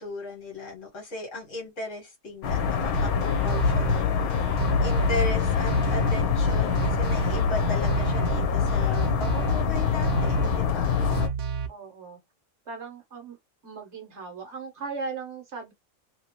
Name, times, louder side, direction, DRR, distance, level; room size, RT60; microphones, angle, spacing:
voice 1, 0.0-4.5 4.8-10.9, left 2 dB, 60° left, 1.7 m, -36 dB
sound 1, 2.4-11.3, left 6 dB, 85° left, 1.2 m, -25 dB
sound 2, 2.9-11.7, right 4 dB, 80° right, 1.1 m, -30 dB
voice 2, 11.7-12.2 12.7-13.4 13.6-15.7, right 4 dB, 55° right, 1.3 m, -37 dB
2.9 x 2.9 x 2.9 m
omnidirectional pair, 1.5 m